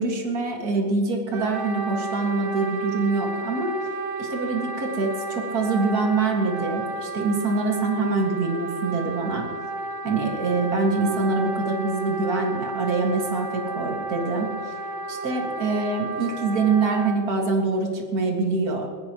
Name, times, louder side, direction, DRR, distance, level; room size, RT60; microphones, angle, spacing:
voice 1, 0.0-3.7 4.2-9.5 10.0-14.5 15.1-18.9, right 3 dB, 70° right, 1 dB, 0.8 m, -25 dB
Wind instrument woodwind instrument, 1.3-17.2, right 2 dB, 85° right, 3.8 m, -32 dB
21.5 x 15.5 x 3.0 m, 2.2 s
omnidirectional pair, 4.9 m